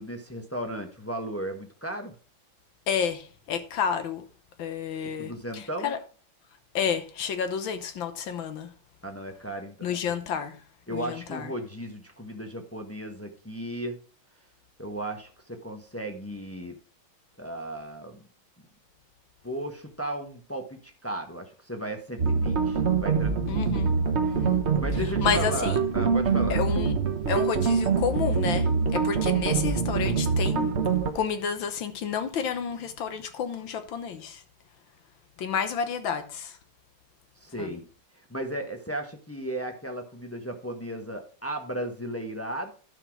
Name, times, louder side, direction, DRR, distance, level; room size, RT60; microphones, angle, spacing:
voice 1, 0.0-2.1 5.2-5.9 9.0-10.0 10.9-14.0 14.8-16.8 17.4-18.2 19.4-23.6 24.8-26.7 37.4-37.9 38.2-42.7, right 1 dB, 10° left, 0.7 m, -35 dB
voice 2, 2.9-4.3 4.6-6.0 6.7-8.7 9.8-10.6 10.9-11.5 23.5-24.0 24.2-24.6 25.2-25.8 26.5-26.9 27.3-30.7 31.2-34.4 35.4-36.6 37.6-37.8, left 7 dB, 70° left, 1.7 m, -30 dB
sound 1, 22.2-31.1, right 5 dB, 40° right, 1.0 m, -25 dB
11.5 x 6.0 x 4.6 m
omnidirectional pair, 2.3 m